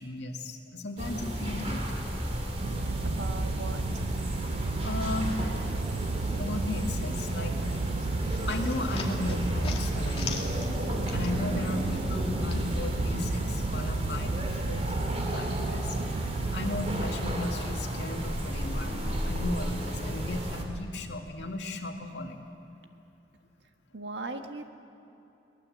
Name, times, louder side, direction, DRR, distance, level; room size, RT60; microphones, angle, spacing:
voice 1, 0.0-2.1 4.8-5.4 6.4-7.9 8.5-14.8 15.2-22.4, left 2 dB, 80° left, 2 dB, 2.1 m, -36 dB
sound 1, 1.0-20.6, equal, 35° right, 2.9 m, -32 dB
sound 2, 2.6-17.1, right 4 dB, 60° right, 0.4 m, -34 dB
voice 2, 3.0-4.1 23.9-24.7, right 2 dB, 90° right, 5 dB, 1.6 m, -39 dB
sound 3, 8.0-11.6 11.9-13.3, left 5 dB, 35° left, 2.2 m, -42 dB
22.0 x 19.0 x 7.6 m, 3.0 s
head